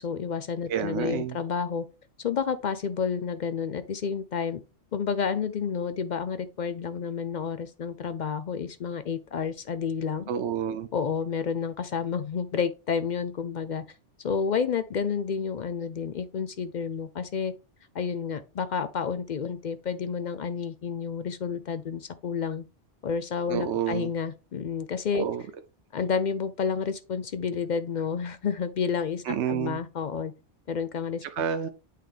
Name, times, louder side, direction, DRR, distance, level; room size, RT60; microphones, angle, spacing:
voice 1, 0.0-1.9 2.2-4.6 4.9-10.3 10.9-13.8 14.2-17.5 17.9-22.7 23.0-25.3 25.9-30.3 30.7-31.2, left 6 dB, 60° left, 0.5 m, -30 dB
voice 2, 0.7-1.4 10.3-10.9 23.5-24.1 25.1-25.4 29.2-29.8 31.2-31.7, right 8 dB, 75° right, 0.9 m, -29 dB
8.3 x 3.7 x 3.3 m
omnidirectional pair, 1.2 m